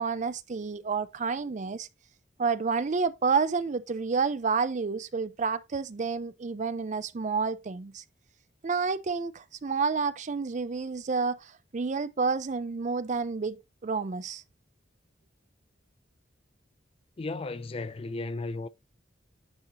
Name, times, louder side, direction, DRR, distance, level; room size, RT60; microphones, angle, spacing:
voice 1, 0.0-1.9 2.4-8.0 8.6-14.4, right 5 dB, 40° right, 0.5 m, -29 dB
voice 2, 17.2-18.7, left 3 dB, 30° left, 0.4 m, -34 dB
10.5 x 4.0 x 2.9 m
head